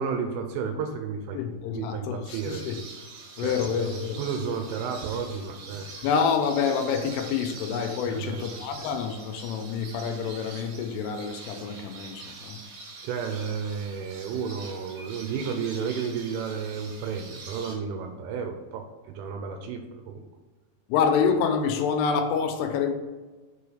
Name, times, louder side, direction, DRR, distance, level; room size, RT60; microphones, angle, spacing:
voice 1, 0.0-1.4 1.7-2.7 3.4-5.9 8.1-8.5 13.0-20.2, right 6 dB, 85° right, 5 dB, 3.1 m, -32 dB
voice 2, 1.3-2.8 3.4-4.2 6.0-12.6 20.9-22.9, left 6 dB, 90° left, 5 dB, 3.2 m, -27 dB
sound 1, 2.3-17.7, right 4 dB, 60° right, 2.7 m, -44 dB
7.0 x 4.6 x 5.0 m, 1.3 s
omnidirectional pair, 5.8 m